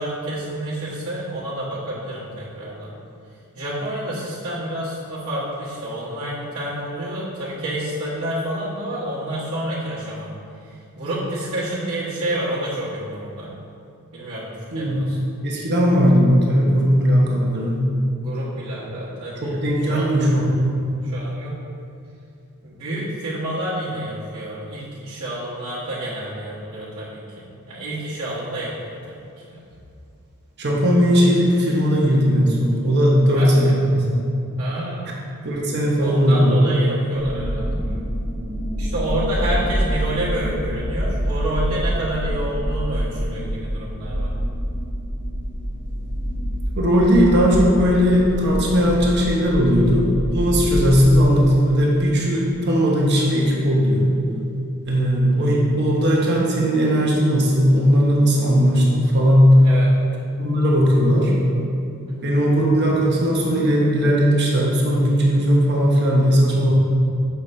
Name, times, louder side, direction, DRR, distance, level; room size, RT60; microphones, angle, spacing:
voice 1, 0.0-2.9 3.5-10.3 10.6-13.5 14.1-15.2 18.2-20.1 21.0-21.6 22.6-29.6 33.3-33.7 34.6-35.1 36.0-38.0 38.8-44.3 59.6-59.9 62.0-62.3, right 1 dB, 65° right, -11 dB, 1.3 m, -29 dB
voice 2, 15.4-17.8 19.4-20.7 30.6-34.2 35.4-36.6 46.8-54.1 54.9-59.6 60.4-61.3 62.2-66.7, equal, 50° right, -3 dB, 1.0 m, -17 dB
sound 1, 37.1-51.2, equal, 40° left, 1.0 m, -26 dB
6.9 x 5.6 x 3.3 m, 2.5 s
head